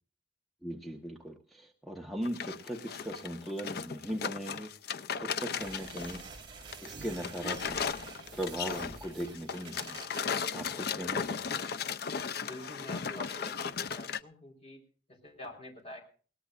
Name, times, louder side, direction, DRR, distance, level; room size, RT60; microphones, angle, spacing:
voice 1, 0.6-4.7 5.2-6.3 6.8-7.8 8.3-10.0 10.5-11.6, equal, ahead, -1 dB, 1.3 m, -39 dB
Wood-handling, 2.2-6.3 6.6-14.2, left 6 dB, 55° left, 0.6 m, -36 dB
sound 1, 5.5-10.4, right 4 dB, 30° right, 3.8 m, -48 dB
voice 2, 12.4-14.8 15.1-16.0, left 1 dB, 35° left, 3 dB, 4.3 m, -47 dB
21.0 x 18.0 x 2.5 m, 0.41 s
head